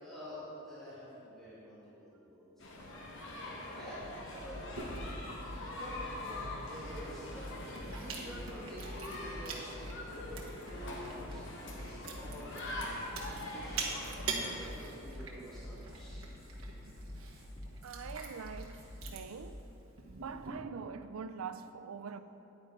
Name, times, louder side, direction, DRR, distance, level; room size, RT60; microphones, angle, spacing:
voice 1, 0.0-3.0 3.7-4.6 5.8-10.3 10.6-12.6 13.2-13.8 14.5-16.2, equal, ahead, 2.4 m, -49 dB
sound 1, 2.6-14.5, left 1 dB, 60° left, 1.4 m, -44 dB
sound 2, 4.0-21.1, left 1 dB, 30° left, 1.6 m, -48 dB
Chewing mastication, 4.8-20.5, right 4 dB, 70° right, 1.3 m, -45 dB
voice 2, 17.8-18.8 19.1-19.6 20.1-22.2, right 6 dB, 90° right, 0.4 m, -44 dB
9.8 x 9.4 x 3.7 m
head